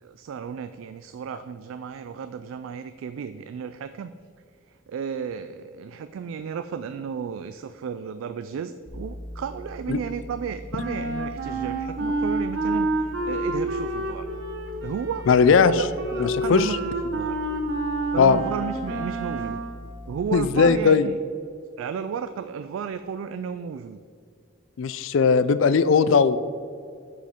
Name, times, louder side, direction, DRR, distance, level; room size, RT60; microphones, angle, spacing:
voice 1, 0.0-4.1 4.9-14.3 14.8-15.3 15.7-16.8 17.0-17.4 18.1-19.6 20.1-21.2 21.8-24.0, right 6 dB, 80° right, 11 dB, 0.3 m, -33 dB
sound 1, 8.9-20.3, equal, 5° left, 1.3 m, -41 dB
Wind instrument woodwind instrument, 10.7-19.8, right 1 dB, 60° right, 1.1 m, -29 dB
voice 2, 15.3-15.7 16.2-16.7 18.2-18.4 20.3-21.1 24.8-26.4, left 5 dB, 70° left, 14 dB, 0.4 m, -18 dB
8.3 x 5.1 x 4.3 m, 2.3 s
head